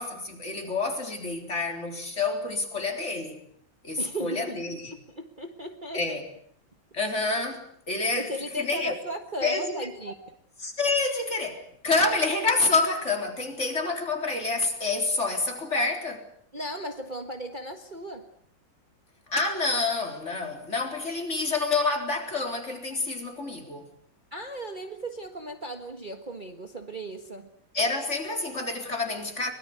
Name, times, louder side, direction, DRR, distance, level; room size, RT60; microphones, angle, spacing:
voice 1, 0.0-3.4 3.8-4.9 5.9-6.2 6.9-8.3 8.6-8.9 9.4-9.9 10.6-16.3 19.3-23.9 27.7-29.5, left 3 dB, 40° left, 4.2 m, -28 dB
voice 2, 4.0-4.6 4.9-6.2 8.2-10.2 16.5-18.3 24.3-27.5, right 1 dB, 25° right, 1.6 m, -36 dB
23.5 x 22.0 x 8.0 m
omnidirectional pair, 2.0 m